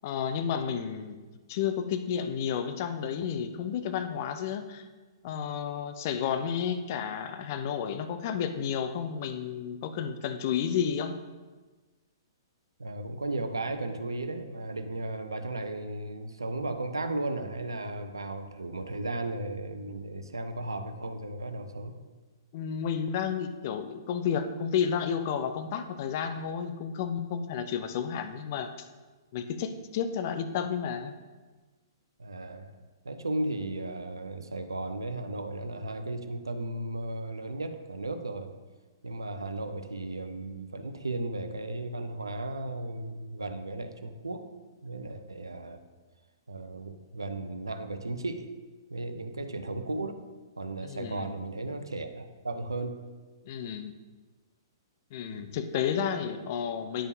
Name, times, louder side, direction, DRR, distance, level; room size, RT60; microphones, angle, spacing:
voice 1, 0.0-4.9 5.2-11.1 22.5-28.9 29.3-31.1 50.8-51.4 53.5-53.9 55.1-57.1, left 7 dB, 40° left, 9 dB, 0.5 m, -31 dB
voice 2, 12.8-21.9 32.2-32.7 33.0-38.5 39.0-44.4 44.8-45.8 46.5-48.5 48.9-50.2 50.6-53.0 55.3-55.5, right 2 dB, 80° right, 8 dB, 0.6 m, -35 dB
9.8 x 5.2 x 2.7 m, 1.3 s
figure-of-eight pair, 115°, 2 cm